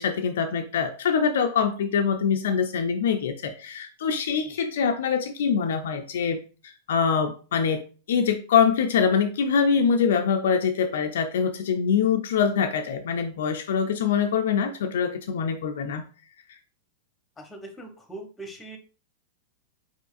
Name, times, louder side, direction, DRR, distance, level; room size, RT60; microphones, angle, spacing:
voice 1, 0.0-6.4 6.6-7.8 8.1-16.0, left 6 dB, 60° left, 6 dB, 0.4 m, -24 dB
voice 2, 17.4-18.8, right 2 dB, 10° left, 4 dB, 1.0 m, -41 dB
4.5 x 4.1 x 2.4 m, 0.37 s
figure-of-eight pair, 95°, 0 cm